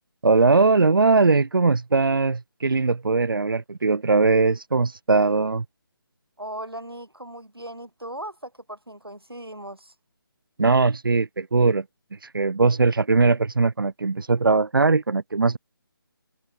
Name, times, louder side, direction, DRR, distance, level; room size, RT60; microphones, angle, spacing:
voice 1, 0.2-5.6 10.6-11.8 12.1-15.6, right 3 dB, 65° right, 0.9 m, -20 dB
voice 2, 6.4-9.9, right 1 dB, 90° right, 4.6 m, -38 dB
figure-of-eight pair, 150°, 12 cm